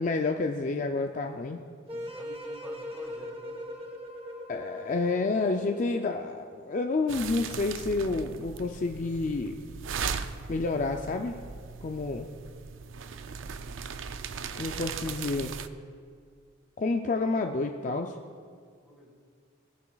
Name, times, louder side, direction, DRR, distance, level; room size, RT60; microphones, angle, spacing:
voice 1, 0.0-1.6 4.5-9.6 10.5-11.4 11.8-12.3 14.6-15.5 16.8-18.2, left 3 dB, 40° left, 4 dB, 0.4 m, -29 dB
voice 2, 1.9-3.6 18.8-19.1, left 1 dB, ahead, -2 dB, 1.8 m, -49 dB
sound 1, 1.9-6.2, equal, 30° right, 1.1 m, -40 dB
sound 2, 7.1-15.7, right 6 dB, 75° right, 0.4 m, -38 dB
21.0 x 7.1 x 2.3 m, 2.1 s
head